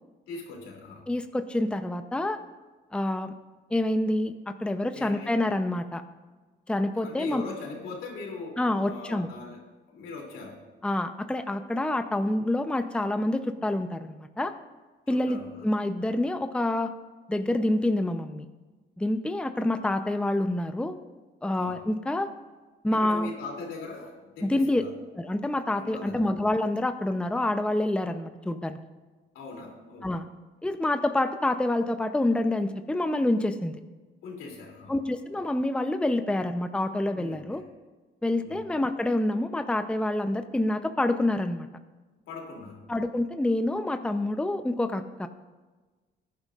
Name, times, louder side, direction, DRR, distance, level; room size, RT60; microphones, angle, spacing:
voice 1, 0.3-1.1 4.9-5.6 6.9-9.6 9.9-10.6 15.1-15.6 21.5-21.8 22.9-24.9 25.8-26.2 29.3-30.1 34.2-34.9 37.1-37.6 38.4-38.6 42.3-42.9, left 3 dB, 90° left, 0 dB, 2.9 m, -40 dB
voice 2, 1.1-2.4 2.9-3.3 3.7-4.3 4.6-6.0 6.7-7.4 8.6-9.3 10.8-14.5 15.1-16.9 17.3-18.4 19.0-21.0 21.4-22.3 22.8-23.3 24.4-24.8 25.2-28.8 30.0-30.3 30.6-33.7 34.9-37.6 38.2-41.7 42.9-45.3, left 1 dB, 5° left, 8 dB, 0.7 m, -27 dB
17.5 x 10.5 x 2.5 m, 1.3 s
cardioid pair, 90°, 20 cm